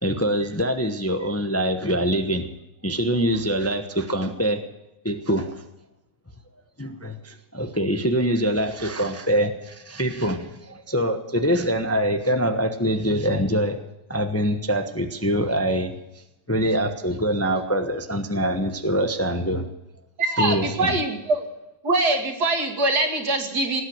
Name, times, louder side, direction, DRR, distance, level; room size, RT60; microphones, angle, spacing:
voice 1, 0.0-2.5 2.8-4.6 5.0-5.6 6.8-13.8 14.1-15.9 16.5-19.7 20.4-21.0, equal, 10° left, 7 dB, 0.9 m, -24 dB
voice 2, 20.2-21.5 21.8-23.8, right 2 dB, 65° right, 3 dB, 2.9 m, -23 dB
18.5 x 9.1 x 8.0 m, 0.94 s
omnidirectional pair, 1.8 m